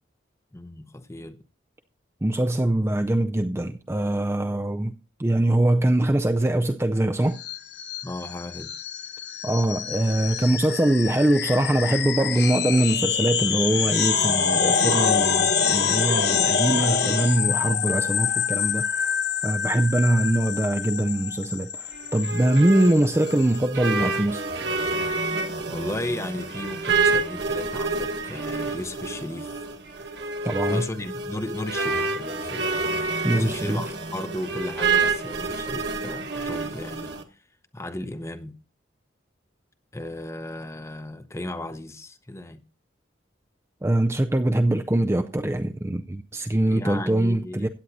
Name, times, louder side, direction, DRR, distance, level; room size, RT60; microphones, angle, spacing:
voice 1, 0.5-1.4 8.0-8.7 25.7-29.6 30.7-32.7 33.3-37.1 37.7-38.5 39.9-42.6 46.7-47.7, left 1 dB, 15° left, 0.7 m, -35 dB
voice 2, 2.2-4.9 5.2-7.4 9.4-19.2 19.4-24.5 30.4-30.8 33.2-33.8 43.8-47.7, right 1 dB, 15° right, 0.4 m, -23 dB
sound 1, 7.4-23.6, left 6 dB, 55° left, 1.1 m, -26 dB
sound 2, 21.9-37.2, right 3 dB, 60° right, 1.4 m, -28 dB
16.0 x 9.4 x 2.7 m
head